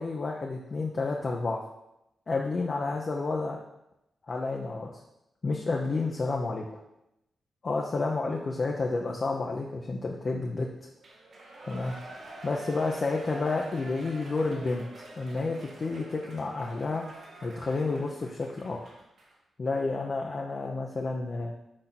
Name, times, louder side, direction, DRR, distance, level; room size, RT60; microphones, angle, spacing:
voice 1, 0.0-1.7 2.3-3.6 4.3-4.9 5.4-6.8 7.6-10.7 11.7-11.9 12.4-14.8 15.2-17.0 17.4-18.9 19.6-21.5, left 3 dB, 45° left, -1 dB, 0.9 m, -30 dB
Shout / Cheering, 11.0-19.3 19.7-19.8, right 2 dB, 70° right, 1.6 m, -46 dB
6.5 x 4.0 x 6.0 m, 0.85 s
cardioid pair, 65°, 0 cm